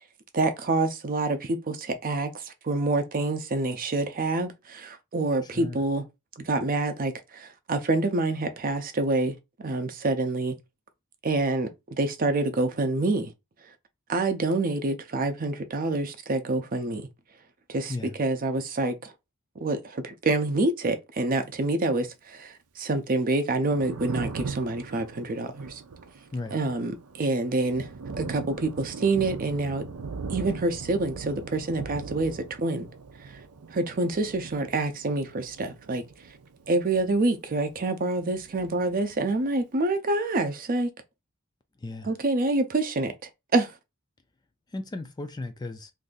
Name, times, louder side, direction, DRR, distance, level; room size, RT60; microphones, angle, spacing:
voice 1, 0.3-6.0 6.4-10.5 11.2-11.7 12.0-13.3 14.1-17.1 17.7-17.9 18.2-19.1 19.6-25.8 26.5-27.9 28.2-29.8 30.3-32.9 33.7-36.0 36.7-40.9 42.0-43.1 43.5-43.7, right 2 dB, 40° right, 0.5 m, -27 dB
voice 2, 5.4-5.8 17.9-18.2 26.3-26.6 41.8-42.1 44.7-45.9, left 2 dB, 20° left, 0.3 m, -35 dB
Thunder, 23.5-37.9 38.2-39.4, right 4 dB, 90° right, 0.5 m, -40 dB
2.6 x 2.5 x 3.8 m
head